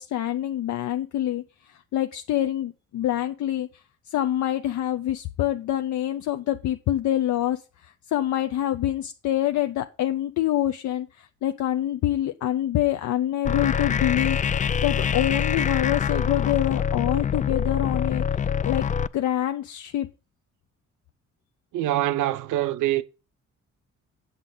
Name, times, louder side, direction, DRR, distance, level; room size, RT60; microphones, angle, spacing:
voice 1, 0.0-3.7 4.1-18.9 19.1-20.1, left 12 dB, 70° left, 0.7 m, -26 dB
sound 1, 13.4-19.1, left 7 dB, 25° left, 0.4 m, -25 dB
voice 2, 21.7-23.0, right 14 dB, 85° right, 0.7 m, -24 dB
8.1 x 7.3 x 3.8 m
cardioid pair, 90°, 30 cm